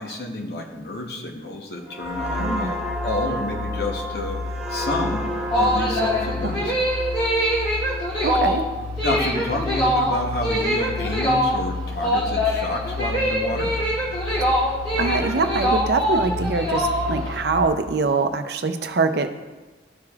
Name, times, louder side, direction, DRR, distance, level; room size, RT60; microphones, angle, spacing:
voice 1, 0.0-5.3 5.6-6.7 9.0-14.0, left 2 dB, 65° left, 2 dB, 0.9 m, -29 dB
sound 1, 1.9-9.3 9.7-10.0, equal, 5° right, 0.8 m, -32 dB
sound 2, 2.0-17.7, left 4 dB, 85° left, 1.1 m, -32 dB
voice 2, 2.4-2.7 6.4-6.5 8.2-8.7 14.6-14.7 15.0-19.3, right 3 dB, 65° right, 8 dB, 0.5 m, -23 dB
sound 3, 5.3-17.4, equal, 30° left, 2.2 m, -23 dB
12.5 x 4.9 x 2.4 m, 1.2 s
head